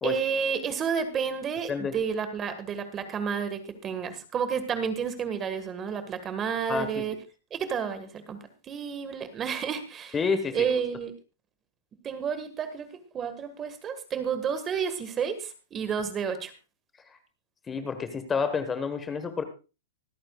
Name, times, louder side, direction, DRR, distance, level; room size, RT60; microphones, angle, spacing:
voice 1, 0.0-7.2 7.5-10.2 10.5-11.1 12.0-16.5, right 6 dB, 20° right, 10 dB, 1.6 m, -31 dB
voice 2, 6.7-7.0 10.1-10.6 17.7-19.4, left 5 dB, 15° left, 9 dB, 1.3 m, -29 dB
25.0 x 8.7 x 2.3 m, 0.31 s
hypercardioid pair, 150°, 0 cm